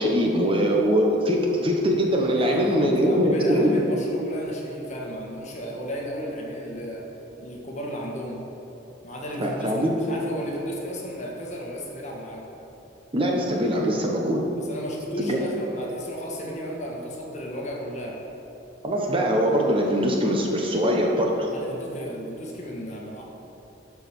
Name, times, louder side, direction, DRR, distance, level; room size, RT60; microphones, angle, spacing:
voice 1, 0.0-3.8 9.4-10.0 13.1-14.4 15.2-15.4 18.8-21.5, equal, 30° right, -1 dB, 1.0 m, -22 dB
voice 2, 2.4-7.1 7.4-8.4 9.0-12.4 14.6-18.2 21.5-23.2, equal, 40° left, -2 dB, 1.6 m, -34 dB
12.0 x 4.9 x 6.0 m, 3.0 s
head